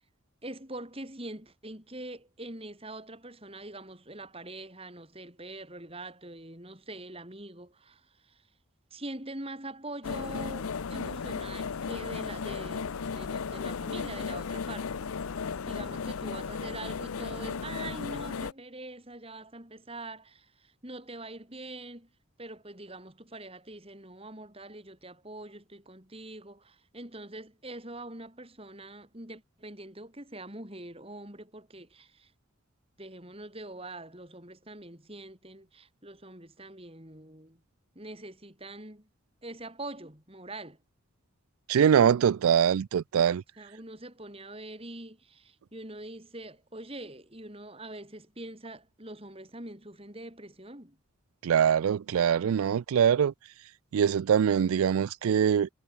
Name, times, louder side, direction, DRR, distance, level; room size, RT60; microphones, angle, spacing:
voice 1, 0.4-8.4 8.9-14.9 15.6-22.1 22.4-32.3 33.0-37.6 38.0-39.1 39.4-40.8 43.6-51.0, right 2 dB, 25° right, 5.2 m, -44 dB
sound 1, 10.0-18.5, left 5 dB, 90° left, 0.6 m, -35 dB
voice 2, 41.7-43.4 51.4-53.3 53.9-55.7, right 8 dB, 85° right, 0.4 m, -23 dB
head